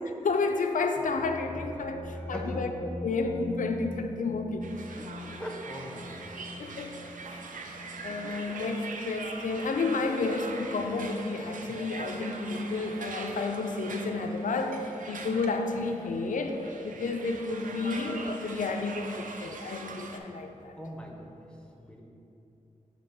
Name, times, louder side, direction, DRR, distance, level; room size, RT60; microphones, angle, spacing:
voice 1, 0.2-2.7 3.0-4.8 6.6-6.9 8.0-20.7, left 3 dB, 75° left, 5 dB, 0.4 m, -31 dB
sound 1, 1.0-8.6, left 1 dB, 45° right, 1.2 m, -42 dB
voice 2, 1.7-2.7 5.0-6.6 11.6-11.8 16.9-17.0 20.8-21.4 21.8-22.0, equal, 5° left, 0 dB, 0.6 m, -42 dB
sound 2, 4.6-20.2, right 3 dB, 85° right, 0.4 m, -42 dB
6.8 x 2.9 x 5.4 m, 2.9 s
wide cardioid pair, 90°, 13 cm